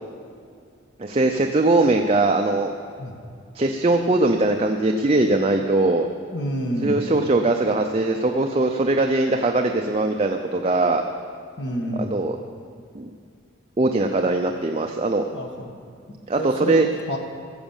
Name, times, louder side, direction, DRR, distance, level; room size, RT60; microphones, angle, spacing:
voice 1, 1.0-2.7 3.5-6.1 6.8-11.0 12.0-12.4 12.9-13.1 13.8-15.2 16.3-16.9, right 2 dB, 30° right, 4 dB, 0.5 m, -21 dB
voice 2, 6.0-7.0 11.6-12.1 15.3-15.7 16.1-16.8 17.1-17.2, equal, 60° left, 3 dB, 1.5 m, -29 dB
16.0 x 7.2 x 7.2 m, 2.3 s
head